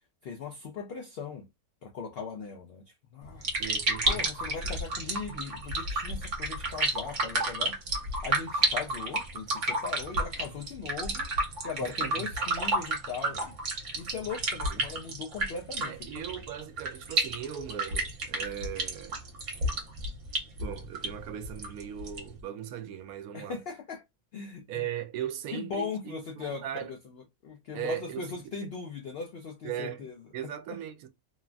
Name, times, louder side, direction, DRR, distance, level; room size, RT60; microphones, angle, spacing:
voice 1, 0.2-1.5 1.8-3.4 4.1-7.8 8.2-11.3 11.6-13.6 14.0-16.1 23.3-24.0 24.3-24.7 25.5-30.1 30.7-30.8, left 5 dB, 80° left, 0.5 m, -39 dB
sound 1, 3.2-22.4, right 2 dB, 60° right, 1.1 m, -32 dB
voice 2, 3.6-4.2 11.8-12.3 14.7-14.9 15.8-19.2 20.6-23.6 24.7-26.9 27.7-28.4 29.6-31.1, right 10 dB, 80° right, 1.1 m, -38 dB
3.0 x 2.2 x 2.4 m
omnidirectional pair, 1.6 m